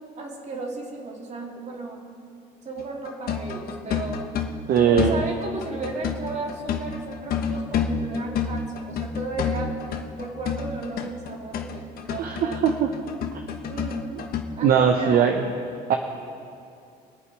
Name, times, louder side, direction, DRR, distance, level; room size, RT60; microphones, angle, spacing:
voice 1, 0.0-2.0 2.6-4.2 4.8-9.8 10.2-12.6 13.7-14.1 14.6-15.3, right 3 dB, 45° right, 0 dB, 2.7 m, -34 dB
sound 1, 2.8-14.4, left 6 dB, 60° left, 1.1 m, -29 dB
voice 2, 4.7-5.1 12.2-12.9 14.1-14.2 14.6-15.4 15.9-16.0, right 8 dB, 60° right, 4 dB, 0.9 m, -20 dB
23.5 x 8.2 x 4.8 m, 2.5 s
cardioid pair, 110°, 17 cm